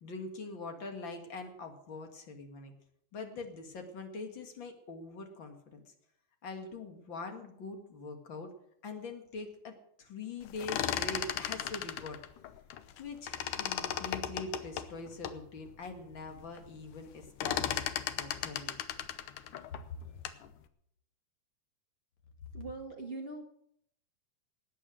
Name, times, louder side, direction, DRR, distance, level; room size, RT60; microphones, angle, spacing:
voice 1, 0.0-2.7 3.1-5.8 6.4-8.5 8.8-12.2 13.0-17.8 18.1-18.8 20.0-20.2, left 3 dB, 45° left, 4 dB, 2.2 m, -43 dB
sound 1, 10.5-13.0 13.3-15.4 15.9-16.0 16.3-16.7 16.9-20.5, left 10 dB, 85° left, 2.4 m, -36 dB
voice 2, 22.5-23.4, right 3 dB, 35° right, 1 dB, 0.9 m, -41 dB
19.0 x 9.3 x 6.3 m, 0.71 s
omnidirectional pair, 3.6 m